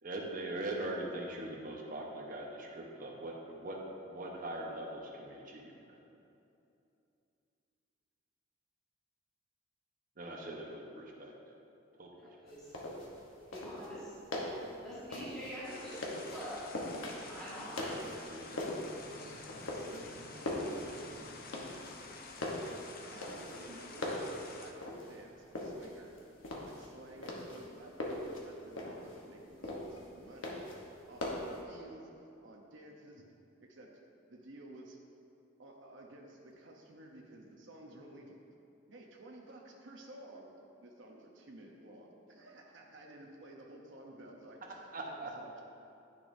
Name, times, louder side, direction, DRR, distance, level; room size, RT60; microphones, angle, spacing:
voice 1, 0.0-6.0 10.2-11.4 12.0-12.3 17.7-18.7 19.1-21.1 44.9-45.3, right 1 dB, 40° right, -1 dB, 1.0 m, -42 dB
voice 2, 12.2-12.7 13.5-14.1 14.8-16.6 17.2-17.9, equal, 5° left, -12 dB, 1.7 m, -45 dB
sound 1, 12.5-31.6, left 1 dB, 80° left, 1.1 m, -42 dB
sound 2, 15.6-24.7, left 4 dB, 45° left, 0.6 m, -50 dB
voice 3, 23.1-26.2 26.6-30.5 31.1-33.9 34.3-35.0 35.6-38.5 38.9-45.6, right 1 dB, 60° right, -1 dB, 0.8 m, -53 dB
10.5 x 6.8 x 2.7 m, 2.7 s
head